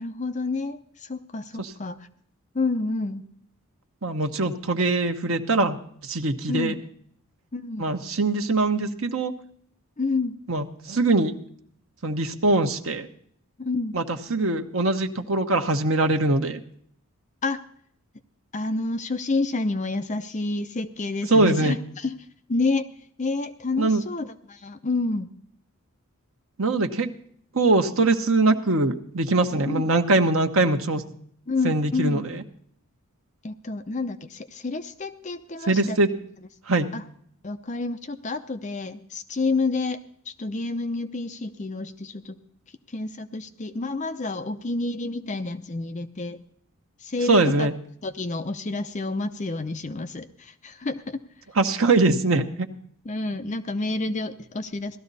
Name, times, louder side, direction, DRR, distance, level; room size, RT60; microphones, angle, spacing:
voice 1, 0.0-2.1 2.5-3.2 6.5-6.8 7.5-7.9 10.0-10.4 13.6-14.0 17.4-17.6 18.5-22.2 22.5-22.9 23.2-25.3 29.7-29.8 31.5-32.2 33.4-36.0 36.9-37.0 37.4-40.0 40.3-42.4 42.9-46.4 47.0-47.7 48.0-51.2 53.1-55.0, left 3 dB, 35° left, 9 dB, 0.6 m, -29 dB
voice 2, 4.0-5.8 6.0-6.8 7.8-9.3 10.5-11.3 12.0-13.1 13.9-16.6 21.3-21.8 23.8-24.0 26.6-27.1 27.5-31.0 31.6-32.4 35.7-36.1 36.7-36.9 47.3-47.7 51.5-52.7, right 2 dB, 65° right, 6 dB, 1.1 m, -22 dB
17.0 x 13.0 x 4.1 m, 0.64 s
head